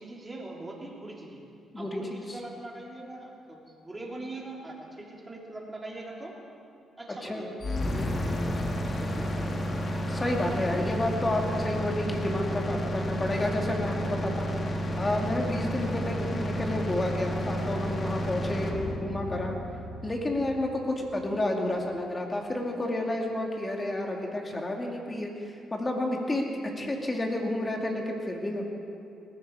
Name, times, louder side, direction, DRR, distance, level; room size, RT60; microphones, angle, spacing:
voice 1, 0.0-1.4 1.8-6.4 7.0-7.6 7.9-9.7 10.7-11.0, right 2 dB, 15° right, -2 dB, 3.4 m, -42 dB
voice 2, 1.7-2.2 7.2-7.5 10.1-14.5 14.9-19.5 20.0-26.4 26.8-28.6, left 1 dB, 25° left, 1 dB, 2.5 m, -30 dB
sound 1, 7.6-21.5, equal, 40° left, 2.0 m, -31 dB
20.0 x 14.5 x 4.9 m, 2.6 s
cardioid pair, 90°, 0 cm